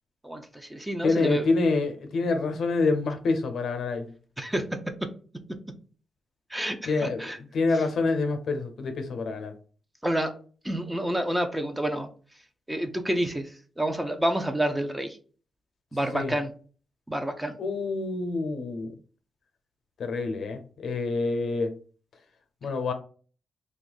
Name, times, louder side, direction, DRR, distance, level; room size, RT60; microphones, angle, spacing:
voice 1, 0.2-1.5 4.4-4.6 6.5-7.4 10.0-10.3 10.6-12.1 12.7-13.5 13.8-15.2 15.9-16.5 17.1-17.5, right 1 dB, 10° right, 6 dB, 0.6 m, -28 dB
voice 2, 1.0-4.1 6.8-9.5 16.1-16.3 17.6-18.9 20.0-21.7 22.6-22.9, left 3 dB, 70° left, 7 dB, 0.6 m, -27 dB
2.7 x 2.4 x 3.9 m, 0.40 s
cardioid pair, 85°, 0 cm